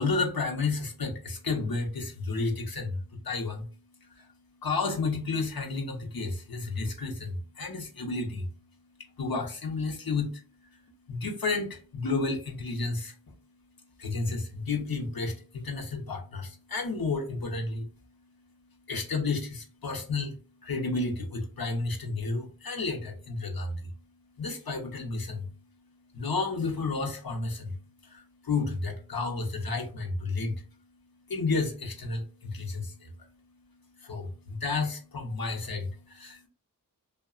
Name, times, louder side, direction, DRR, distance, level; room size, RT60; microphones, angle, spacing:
voice 1, 0.0-36.5, left 3 dB, 80° left, 2 dB, 0.7 m, -32 dB
2.8 x 2.2 x 2.3 m, 0.39 s
wide cardioid pair, 45°, 35 cm